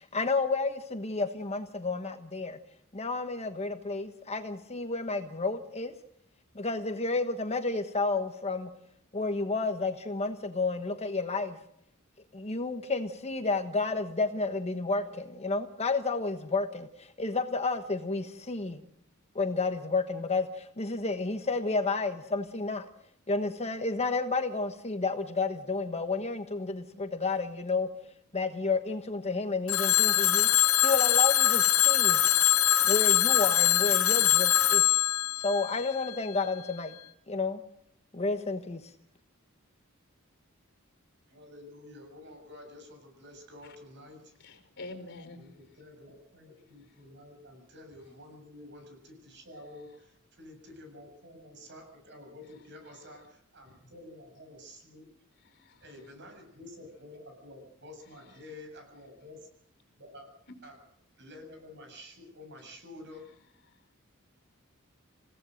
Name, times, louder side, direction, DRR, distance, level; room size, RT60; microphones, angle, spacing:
voice 1, 0.0-2.6 2.9-5.9 6.5-8.7 9.1-11.6 12.3-18.8 19.3-22.8 23.3-27.9 28.3-32.2 32.9-34.8 35.4-36.9 37.3-37.6 38.1-38.8, left 3 dB, 30° left, 8 dB, 1.1 m, -31 dB
Telephone, 29.7-36.5, left 13 dB, 75° left, 1.7 m, -23 dB
voice 2, 41.3-44.3 45.3-55.1 55.8-59.5 60.0-60.3 60.6-60.7 61.2-63.3, left 1 dB, 55° right, 5 dB, 7.4 m, -50 dB
voice 3, 44.4-45.4 55.4-55.9 58.2-58.4, left 2 dB, 55° left, 8 dB, 4.6 m, -46 dB
28.5 x 17.0 x 6.5 m, 0.70 s
head